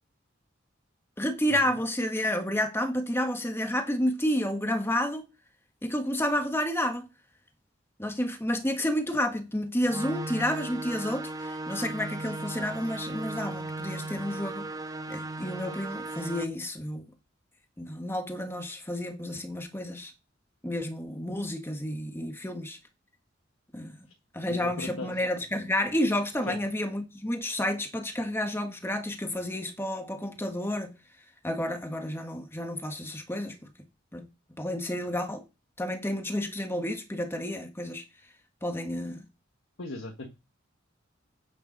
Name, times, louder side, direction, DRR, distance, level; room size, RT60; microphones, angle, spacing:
voice 1, 1.2-5.2 5.8-7.1 8.0-14.7 15.1-17.1 17.8-20.1 20.6-22.8 23.7-24.1 24.3-30.9 31.4-33.6 34.1-34.2 34.6-35.4 35.8-38.0 38.6-39.2, left 1 dB, 10° left, 1.6 m, -30 dB
sound 1, 9.8-16.4, right 2 dB, 20° right, 0.8 m, -37 dB
voice 2, 24.5-25.3 26.5-26.6 39.8-40.3, left 2 dB, 85° left, 1.7 m, -38 dB
9.3 x 6.9 x 5.5 m
head